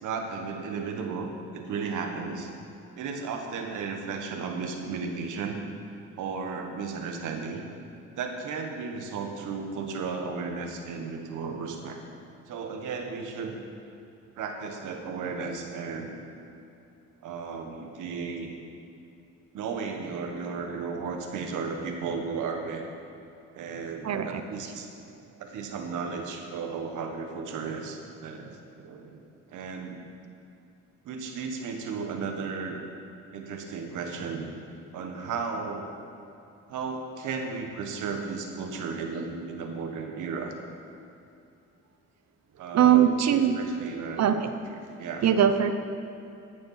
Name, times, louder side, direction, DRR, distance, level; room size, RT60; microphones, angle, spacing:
voice 1, 0.0-2.5 2.9-5.6 6.2-7.6 8.1-12.0 12.5-13.6 14.4-16.1 17.2-18.6 19.5-22.9 23.5-24.9 25.4-29.2 29.5-30.0 31.0-32.8 33.3-34.5 34.9-35.9 36.7-40.5 42.6-43.1 43.5-44.4 44.7-45.3, right 5 dB, 85° right, 3 dB, 1.5 m, -34 dB
voice 2, 24.0-24.4 42.7-43.6 44.2-44.4 45.2-45.7, right 9 dB, 60° right, 9 dB, 0.9 m, -21 dB
15.0 x 7.0 x 5.7 m, 2.6 s
cardioid pair, 90°, 30 cm